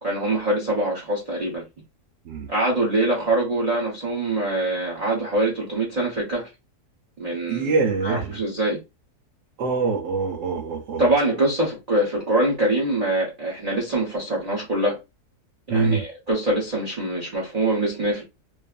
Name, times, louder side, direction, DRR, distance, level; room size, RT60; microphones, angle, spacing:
voice 1, 0.0-1.6 2.5-6.5 7.2-7.7 8.0-8.8 11.0-15.0 15.7-18.2, right 1 dB, 35° right, 0.7 m, -24 dB
voice 2, 7.5-8.4 9.6-11.1 15.7-16.0, right 4 dB, 85° right, 1.2 m, -24 dB
2.6 x 2.5 x 2.3 m
omnidirectional pair, 1.7 m